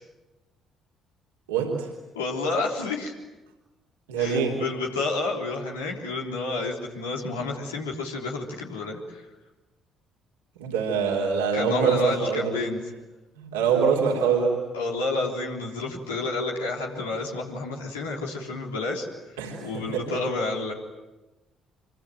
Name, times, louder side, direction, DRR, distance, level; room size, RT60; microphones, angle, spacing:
voice 1, 1.5-1.9 4.1-4.5 10.6-12.6 13.4-14.6 19.4-20.1, right 6 dB, 80° right, -2 dB, 3.7 m, -24 dB
voice 2, 2.2-3.1 4.2-9.3 11.5-12.8 14.7-19.1 19.6-20.7, left 3 dB, 85° left, -1 dB, 3.6 m, -30 dB
26.0 x 25.0 x 9.2 m, 1.1 s
hypercardioid pair, 50°, 0 cm